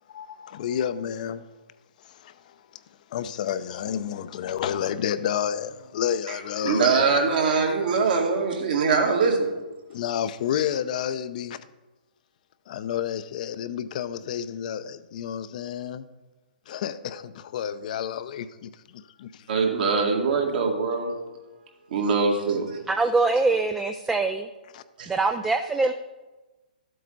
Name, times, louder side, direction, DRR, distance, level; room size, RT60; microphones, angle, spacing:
voice 1, 0.1-1.5 2.1-2.3 3.1-6.9 9.9-11.6 12.7-16.1 16.7-19.5 24.7-24.8, left 9 dB, 55° left, 0.7 m, -30 dB
voice 2, 6.6-9.5 19.5-21.1 21.9-22.8 25.0-25.1, right 4 dB, 65° right, 2.2 m, -22 dB
voice 3, 22.9-24.5 25.1-25.9, right 3 dB, 10° right, 0.4 m, -23 dB
12.5 x 7.7 x 4.0 m
hypercardioid pair, 140°, 5 cm